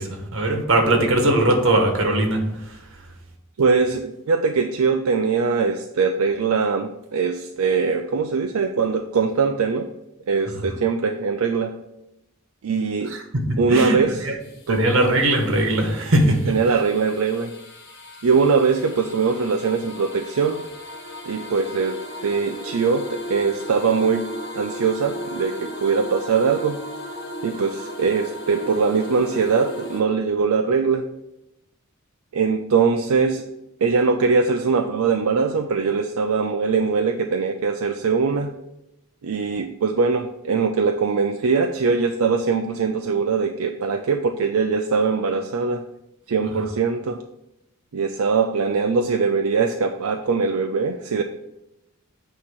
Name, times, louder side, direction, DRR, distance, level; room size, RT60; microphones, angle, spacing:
voice 1, 0.0-2.8 10.5-10.8 13.0-14.4 14.7-16.8 46.6-46.7, right 1 dB, 65° right, 3 dB, 1.4 m, -21 dB
voice 2, 3.6-9.9 10.3-11.8 12.6-13.1 13.6-14.2 14.7-14.8 16.5-17.5 18.2-20.6 21.3-26.8 27.4-31.1 32.3-33.4 33.8-38.5 39.2-45.8 46.3-47.2 47.9-51.2, right 5 dB, 85° right, 5 dB, 0.5 m, -21 dB
sound 1, 14.4-30.0, left 1 dB, 50° left, 1.2 m, -36 dB
8.5 x 2.9 x 6.1 m, 0.90 s
head